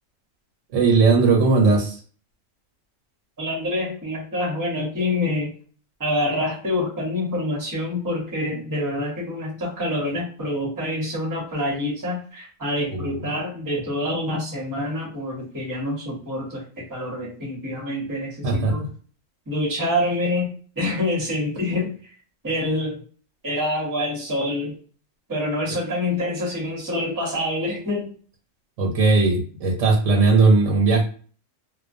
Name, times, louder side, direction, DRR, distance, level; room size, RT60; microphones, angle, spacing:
voice 1, 0.7-2.0 12.9-13.3 18.4-18.7 25.7-25.8 28.8-31.0, right 3 dB, 80° right, 1 dB, 1.1 m, -18 dB
voice 2, 3.4-5.5 6.0-18.8 19.5-21.9 22.4-23.0 23.4-24.8 25.3-28.1, left 1 dB, 20° right, -2 dB, 0.8 m, -26 dB
2.2 x 2.2 x 2.5 m, 0.42 s
omnidirectional pair, 1.3 m